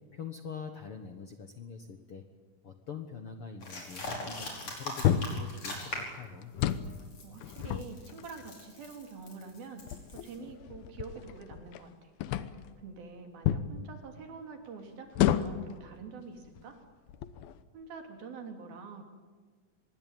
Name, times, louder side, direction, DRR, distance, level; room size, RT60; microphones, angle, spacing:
voice 1, 0.1-2.2 2.6-6.5, left 6 dB, 60° left, 6 dB, 1.6 m, -44 dB
sound 1, 3.6-6.2 6.6-10.4, left 1 dB, 40° left, 6.3 m, -41 dB
sound 2, 5.0-5.5 6.4-7.0 7.4-8.5 9.2-9.3 9.8-11.8 12.2-12.7 13.5-13.7 15.1-15.7 16.5-16.6 17.1-17.6, left 11 dB, 85° left, 2.9 m, -30 dB
voice 2, 7.0-9.8 10.1-12.1 12.8-16.8 17.7-19.0, right 4 dB, 75° right, 4 dB, 4.9 m, -46 dB
25.5 x 21.5 x 9.2 m, 1.4 s
omnidirectional pair, 4.2 m